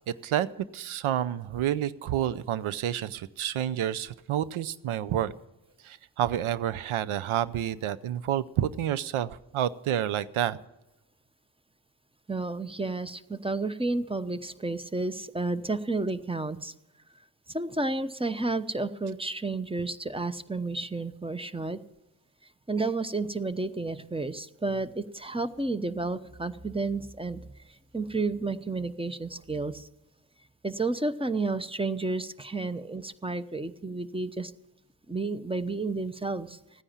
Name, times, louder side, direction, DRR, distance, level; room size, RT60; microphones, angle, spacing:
voice 1, 0.1-0.5 0.7-5.3 5.8-10.6, right 11 dB, 80° right, 15 dB, 0.7 m, -29 dB
voice 2, 12.3-16.7 17.5-21.8 22.7-27.4 27.9-29.9 30.6-34.5 35.1-36.6, right 3 dB, 10° right, 12 dB, 0.8 m, -31 dB
14.5 x 9.8 x 7.4 m, 0.94 s
supercardioid pair, 40°, 48 cm